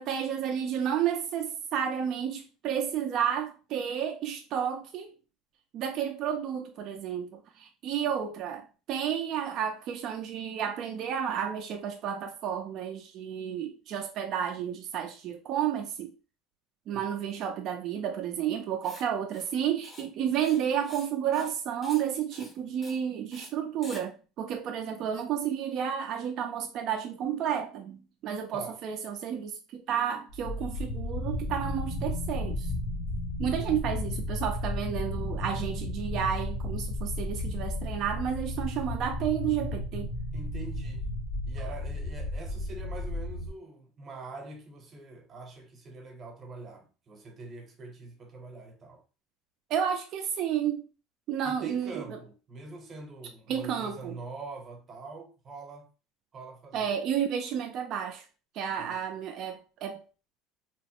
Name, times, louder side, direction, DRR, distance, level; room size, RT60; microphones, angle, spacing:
voice 1, 0.0-5.1 5.7-16.1 16.9-32.7 33.4-40.1 49.7-50.8 51.3-52.2 53.5-54.2 56.7-58.2 58.5-60.0, right 9 dB, 50° right, 0.4 m, -31 dB
Writing, 18.8-19.0 19.3-19.5 19.8-20.0 20.3-21.1 21.3-21.6 21.8-22.0 22.3-22.5 22.8-23.0 23.3-23.5 23.8-24.0, left 2 dB, 20° left, 0.6 m, -48 dB
voice 2, 28.5-28.8 40.3-41.1 41.5-49.0 51.4-55.9 56.3-57.0 58.8-59.1, right 3 dB, 30° right, 0.8 m, -44 dB
sound 1, 30.3-43.5, left 1 dB, 75° left, 0.6 m, -33 dB
3.0 x 2.0 x 2.9 m
cardioid pair, 140°, 0 cm